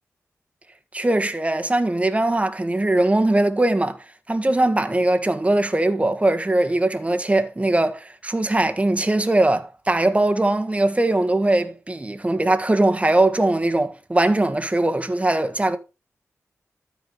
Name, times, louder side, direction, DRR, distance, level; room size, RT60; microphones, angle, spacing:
voice 1, 0.9-4.0 4.3-15.8, right 2 dB, 25° right, 1.7 m, -20 dB
13.0 x 5.0 x 5.5 m
cardioid pair, 55°, 5 cm